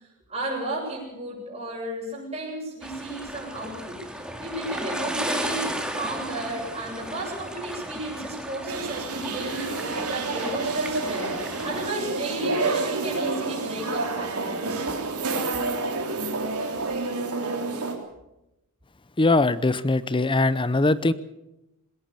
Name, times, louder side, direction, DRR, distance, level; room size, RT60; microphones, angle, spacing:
voice 1, 0.3-4.0 4.4-9.7 10.1-14.8, right 1 dB, 30° right, -6 dB, 7.4 m, -33 dB
sound 1, 2.8-11.9, right 1 dB, 5° right, 2.3 m, -34 dB
sound 2, 8.7-17.9, right 3 dB, 85° right, 3.6 m, -29 dB
voice 2, 19.2-21.1, left 2 dB, 25° left, 16 dB, 0.7 m, -21 dB
21.0 x 18.0 x 7.0 m, 0.90 s
head